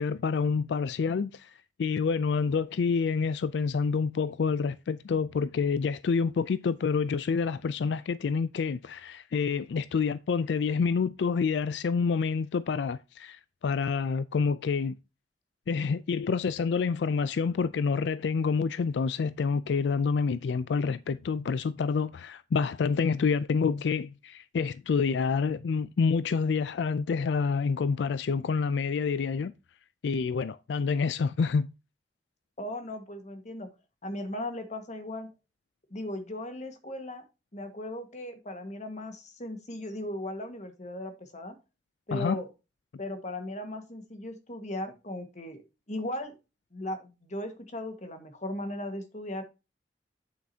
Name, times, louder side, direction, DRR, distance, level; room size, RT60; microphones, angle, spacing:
voice 1, 0.0-1.5 1.8-14.9 15.7-29.5 30.0-31.7 42.1-42.4, left 5 dB, 80° left, 0.4 m, -28 dB
voice 2, 32.6-33.7 34.0-35.3 35.9-37.2 37.5-41.5 42.1-42.5 43.0-45.6 45.9-46.3 46.7-49.4, left 1 dB, 45° left, 1.6 m, -37 dB
8.6 x 7.5 x 2.8 m
head